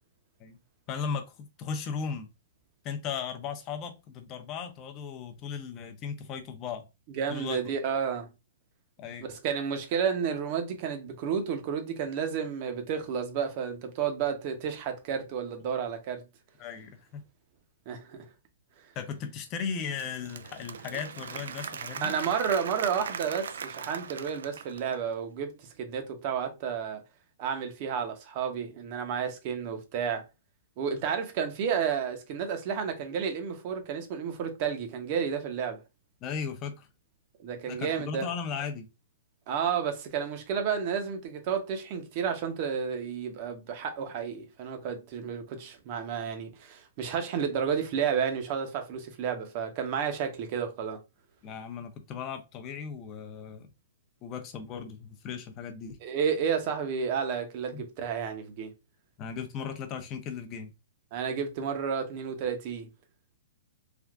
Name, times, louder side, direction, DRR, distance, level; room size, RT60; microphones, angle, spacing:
voice 1, 0.9-2.3 2.8-6.8 7.3-7.6 9.0-9.3 16.6-17.2 19.0-22.1 36.2-36.9 37.6-38.9 51.4-53.7 54.2-56.0 57.7-57.8 59.2-60.7, left 6 dB, 30° left, 0.6 m, -36 dB
voice 2, 7.2-8.3 9.2-16.2 17.9-18.2 22.0-25.5 25.8-27.0 27.4-30.2 30.8-35.8 37.4-38.3 39.5-51.0 56.0-58.7 61.1-62.9, right 7 dB, 40° right, 0.8 m, -31 dB
Applause / Crowd, 19.7-25.1, right 6 dB, 80° right, 0.3 m, -40 dB
3.4 x 2.4 x 2.4 m
hypercardioid pair, 145°, 0 cm